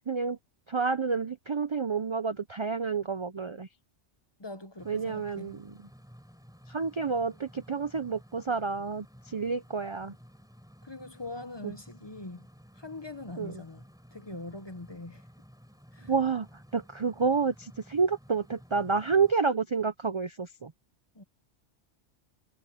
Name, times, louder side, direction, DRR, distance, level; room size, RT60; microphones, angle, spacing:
voice 1, 0.1-0.4 0.7-3.7 4.9-5.7 6.7-10.1 11.6-11.7 13.4-13.5 16.1-16.5 16.7-20.7, right 5 dB, 40° right, 0.4 m, -29 dB
voice 2, 4.4-5.6 10.8-12.5 12.7-13.8 14.1-15.3 15.9-16.1 21.1-21.2, left 2 dB, 25° left, 0.8 m, -42 dB
sound 1, 4.8-19.3, equal, 5° right, 4.2 m, -54 dB
omnidirectional pair, 1.2 m